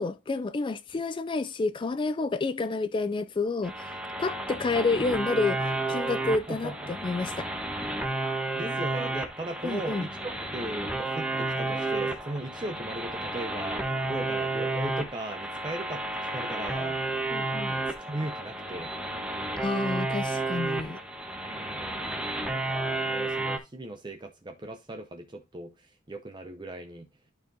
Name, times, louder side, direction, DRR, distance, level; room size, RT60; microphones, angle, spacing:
voice 1, 0.0-3.8 4.2-7.5 9.6-10.1 17.3-17.8 19.6-21.0, left 3 dB, 25° left, 0.3 m, -29 dB
sound 1, 3.6-23.6, right 2 dB, 5° right, 1.0 m, -32 dB
voice 2, 8.6-16.0 16.3-17.0 17.7-18.9 21.4-27.1, right 2 dB, 20° right, 0.6 m, -38 dB
11.5 x 4.5 x 2.7 m
head